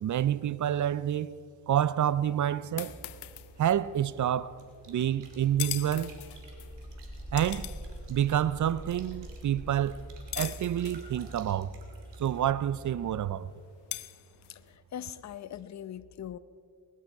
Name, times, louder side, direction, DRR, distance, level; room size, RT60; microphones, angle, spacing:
voice 1, 0.0-1.3 1.7-3.0 3.6-4.5 4.9-6.2 7.3-7.7 8.1-10.0 10.4-11.8 12.2-13.5, right 10 dB, 50° right, 0.5 m, -28 dB
sound 1, 2.1-14.8, left 17 dB, 75° left, 0.7 m, -44 dB
sound 2, 2.9-13.2, equal, 20° left, 2.2 m, -46 dB
sound 3, 4.6-12.4, right 5 dB, 85° right, 2.6 m, -57 dB
voice 2, 14.5-16.4, left 10 dB, 40° left, 0.7 m, -41 dB
20.5 x 11.0 x 4.7 m
supercardioid pair, 55°, 41 cm